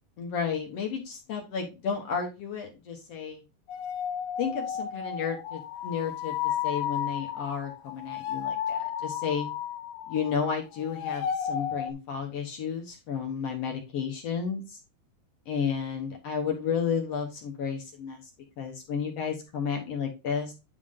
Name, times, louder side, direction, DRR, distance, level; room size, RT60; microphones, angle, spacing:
voice 1, 0.2-3.4 4.4-6.3 6.6-9.5 10.1-14.8 15.5-18.2 18.6-20.5, left 6 dB, 60° left, 2 dB, 1.9 m, -32 dB
sound 1, 3.7-10.5 10.7-11.9, left 9 dB, 80° left, 1.5 m, -33 dB
9.7 x 3.6 x 3.7 m, 0.27 s
omnidirectional pair, 3.8 m